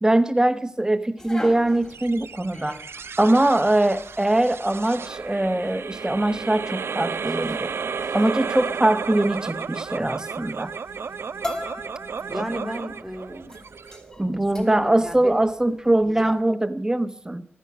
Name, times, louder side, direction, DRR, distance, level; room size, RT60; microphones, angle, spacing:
voice 1, 0.0-2.8 3.2-7.7 8.1-10.7 14.2-17.5, right 1 dB, 15° right, 11 dB, 1.1 m, -22 dB
sound 1, 1.2-16.4, left 1 dB, 20° left, 3.1 m, -42 dB
sound 2, 1.9-14.5, right 5 dB, 75° right, 0.6 m, -33 dB
voice 2, 12.3-13.7 14.2-15.5 16.1-16.6, equal, ahead, 7 dB, 1.9 m, -33 dB
14.0 x 11.0 x 8.2 m, 0.64 s
cardioid pair, 65°, 4 cm